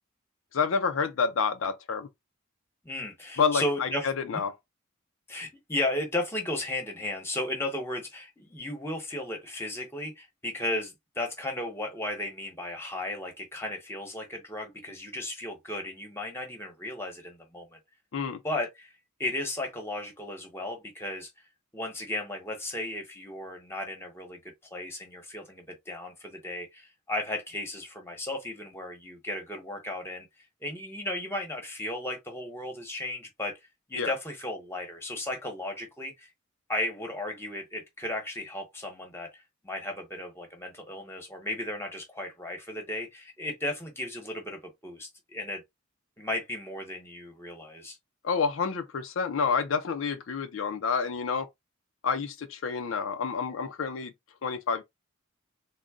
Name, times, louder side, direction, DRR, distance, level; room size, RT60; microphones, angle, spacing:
voice 1, 0.5-2.1 3.4-4.5 18.1-18.4 34.0-34.1 48.2-51.5 52.0-54.1 54.4-54.8, left 5 dB, 65° left, 0.4 m, -28 dB
voice 2, 2.8-4.4 5.3-17.8 18.4-18.9 19.2-21.3 21.7-24.4 24.7-30.3 30.6-33.5 33.9-36.3 36.7-45.6 46.2-48.0, left 1 dB, 10° left, 1.0 m, -35 dB
3.7 x 2.1 x 3.5 m
head